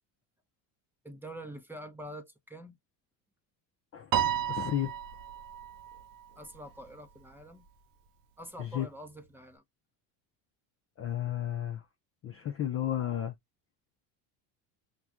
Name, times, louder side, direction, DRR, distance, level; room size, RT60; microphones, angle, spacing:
voice 1, 1.0-2.8 6.4-7.6 8.4-9.6, equal, 5° right, 0.7 m, -45 dB
Piano, 4.1-6.6, right 9 dB, 45° right, 0.6 m, -32 dB
voice 2, 4.5-4.9 8.6-8.9 11.0-11.8 12.2-13.3, left 11 dB, 30° left, 0.4 m, -32 dB
5.8 x 2.2 x 2.4 m
supercardioid pair, 100°, 49 cm